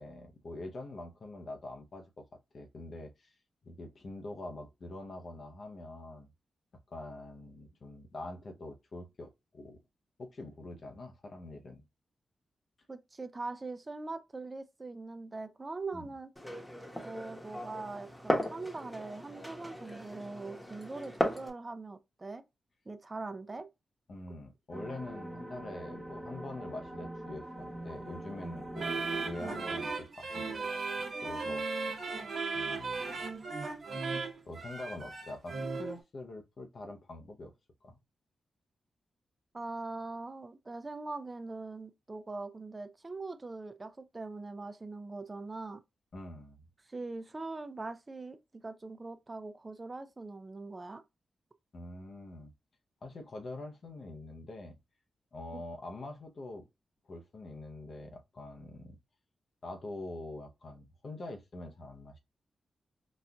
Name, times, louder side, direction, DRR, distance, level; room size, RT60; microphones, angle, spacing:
voice 1, 0.0-2.3 2.5-3.3 3.6-6.3 6.9-9.8 10.2-11.8 15.9-16.1 24.1-30.7 31.2-32.1 32.5-33.3 33.9-34.2 34.5-37.5 37.8-38.0 46.1-46.6 51.7-52.5 53.0-54.8 55.3-56.6 57.0-59.0 59.6-62.2, left 2 dB, 60° left, 0.7 m, -45 dB
voice 2, 12.9-16.3 17.0-22.4 22.9-23.7 28.9-29.0 39.5-45.8 46.9-51.0 55.5-55.6, right 3 dB, 35° right, 0.5 m, -42 dB
Glass, 16.4-21.5, equal, 15° left, 1.0 m, -36 dB
sound 1, 24.7-29.9, right 1 dB, ahead, 1.2 m, -43 dB
sound 2, 28.7-36.0, right 4 dB, 60° right, 0.9 m, -36 dB
4.1 x 2.4 x 2.3 m
cardioid pair, 50°, 0 cm